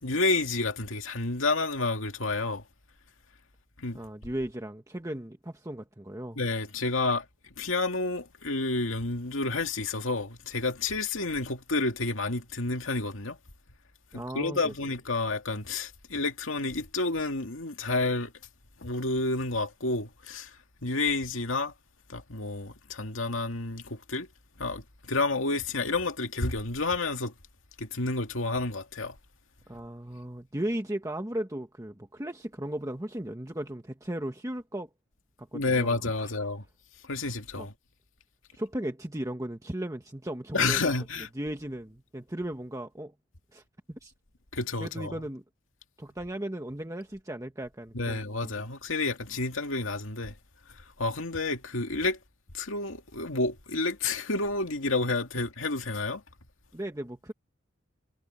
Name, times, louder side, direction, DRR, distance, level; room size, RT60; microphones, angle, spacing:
voice 1, 0.0-2.6 3.8-4.0 6.4-7.2 7.6-13.4 14.1-18.3 18.8-20.5 20.8-21.7 22.1-24.3 24.6-27.3 27.8-29.2 35.5-36.6 37.0-37.7 40.5-41.3 44.5-45.2 47.9-50.3 51.0-52.2 52.5-56.2, left 3 dB, 90° left, 2.3 m, -30 dB
voice 2, 3.9-6.4 14.1-14.7 29.7-34.9 35.4-36.3 37.6-37.7 38.5-40.8 41.3-43.1 43.5-43.6 43.9-44.1 44.8-45.4 46.0-48.6 56.7-57.3, right 1 dB, 15° right, 1.2 m, -36 dB
head